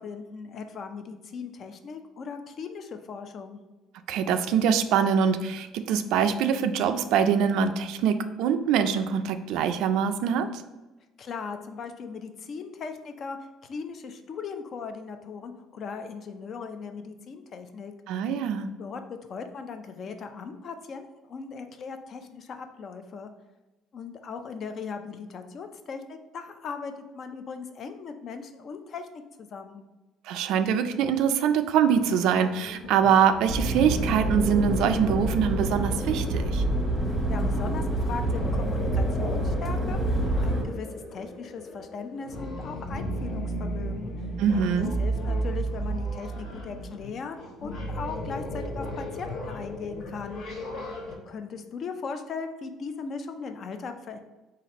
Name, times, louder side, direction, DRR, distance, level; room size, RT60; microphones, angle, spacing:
voice 1, 0.0-3.6 11.2-13.4 13.6-17.9 18.8-23.3 23.9-29.8 37.1-44.3 45.0-50.4 51.3-54.2, left 5 dB, 40° left, 7 dB, 0.4 m, -38 dB
voice 2, 4.1-10.6 18.1-18.7 30.3-36.6 44.4-44.9, right 7 dB, 70° right, 9 dB, 0.3 m, -24 dB
sound 1, 31.9-51.1, right 1 dB, 55° left, 0.9 m, -36 dB
sound 2, 33.5-40.6, right 1 dB, ahead, 0.9 m, -27 dB
4.0 x 2.5 x 4.1 m, 1.1 s
cardioid pair, 150°, 0 cm